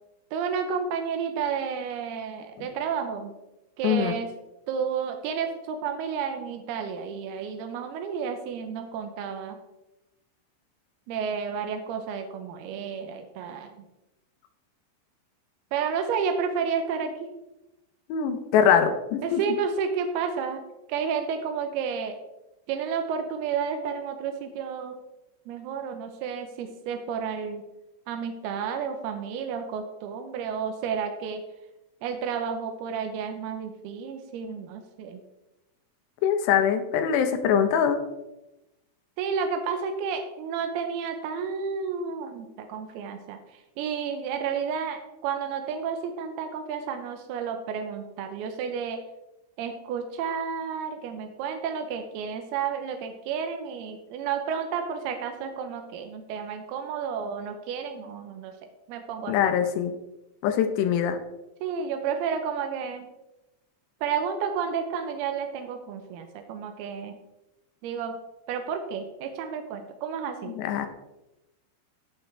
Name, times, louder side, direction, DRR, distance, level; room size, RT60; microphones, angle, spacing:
voice 1, 0.3-3.3 3.8-4.3 4.7-9.6 11.1-13.7 15.7-17.3 19.2-20.6 20.9-22.2 22.7-25.0 25.5-27.6 28.1-31.4 32.0-35.2 39.2-43.4 43.8-49.0 49.6-58.5 58.9-59.4 61.6-63.1 64.0-67.2 67.8-68.2 68.5-70.6, right 6 dB, 90° right, 6 dB, 2.3 m, -31 dB
voice 2, 3.8-4.1 18.1-19.4 36.2-38.0 59.3-59.9 60.4-61.2 70.6-70.9, left 8 dB, 75° left, 7 dB, 2.7 m, -23 dB
15.0 x 5.8 x 3.4 m, 0.97 s
omnidirectional pair, 5.5 m